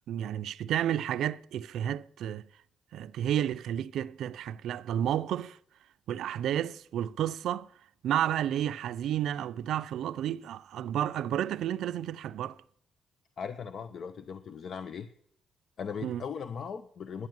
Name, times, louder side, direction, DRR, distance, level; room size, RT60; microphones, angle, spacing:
voice 1, 0.1-2.5 2.9-5.6 6.1-7.7 8.0-12.6 16.0-16.2, right 11 dB, 75° right, 0.4 m, -31 dB
voice 2, 13.4-15.1 15.8-17.3, left 6 dB, 55° left, 0.7 m, -38 dB
10.5 x 8.0 x 9.5 m
cardioid pair, 90°, 0 cm